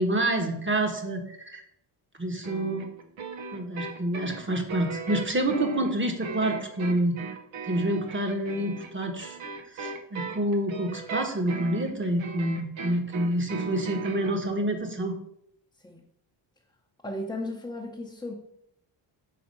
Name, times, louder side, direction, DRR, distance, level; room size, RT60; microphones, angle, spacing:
voice 1, 0.0-1.6 2.2-2.9 3.5-7.1 7.6-9.4 9.7-15.2, right 1 dB, 25° right, 4 dB, 1.2 m, -28 dB
sound 1, 2.4-14.4, right 4 dB, 75° right, 1.0 m, -38 dB
voice 2, 11.9-12.2 15.8-16.1 17.0-18.3, left 1 dB, 10° left, -2 dB, 0.8 m, -36 dB
6.0 x 4.2 x 5.3 m, 0.75 s
cardioid pair, 110°, 47 cm